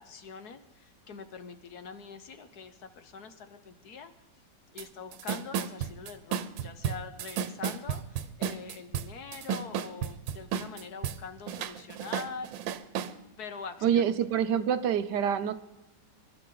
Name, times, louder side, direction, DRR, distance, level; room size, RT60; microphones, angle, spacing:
voice 1, 0.0-4.1 4.7-12.7 13.4-14.1, left 5 dB, 60° left, 9 dB, 1.4 m, -44 dB
sound 1, 4.8-4.9 5.1-11.2 11.5-13.1, right 8 dB, 90° right, 1.5 m, -33 dB
voice 2, 13.8-15.5, right 8 dB, 70° right, 12 dB, 1.2 m, -26 dB
24.0 x 12.0 x 3.9 m, 1.0 s
omnidirectional pair, 2.0 m